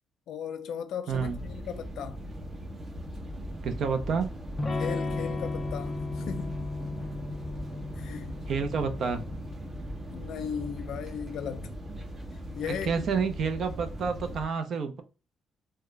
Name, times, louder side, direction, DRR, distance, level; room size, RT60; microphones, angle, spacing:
voice 1, 0.3-2.3 4.8-6.6 8.0-8.3 10.1-11.8 12.5-13.0, left 7 dB, 75° left, 0.5 m, -37 dB
sound 1, 1.1-14.5, equal, 45° right, 1.3 m, -39 dB
voice 2, 1.1-1.4 3.6-4.3 8.5-9.2 11.9-12.0 12.6-15.0, right 5 dB, 60° right, 0.6 m, -29 dB
Electric guitar / Strum, 4.6-10.3, left 3 dB, 25° left, 0.7 m, -36 dB
3.5 x 2.2 x 3.2 m
cardioid pair, 90°, 0 cm